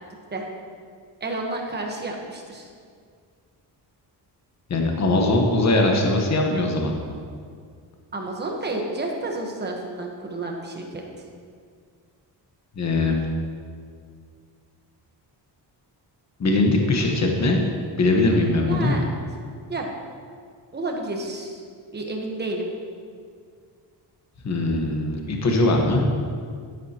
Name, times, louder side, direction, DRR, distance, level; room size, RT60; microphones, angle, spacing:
voice 1, 1.2-2.7 8.1-11.0 18.7-19.0 19.7-19.9 20.7-21.6 21.9-22.7, right 2 dB, 25° right, 1 dB, 1.2 m, -30 dB
voice 2, 4.7-6.9 12.8-13.2 16.4-17.6 18.0-18.9 24.4-26.0, left 2 dB, 40° left, 1 dB, 1.2 m, -21 dB
11.0 x 11.0 x 2.9 m, 2.1 s
wide cardioid pair, 175°, 42 cm